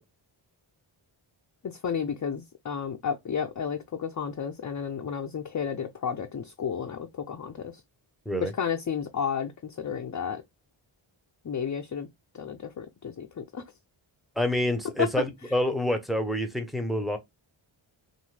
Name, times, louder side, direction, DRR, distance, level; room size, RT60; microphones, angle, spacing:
voice 1, 1.6-7.8 8.4-10.4 11.4-12.1 12.3-13.6 15.0-15.1, left 7 dB, 40° left, 0.5 m, -32 dB
voice 2, 14.4-17.2, equal, ahead, 0.7 m, -27 dB
2.6 x 2.3 x 3.2 m
cardioid pair, 55°, 50 cm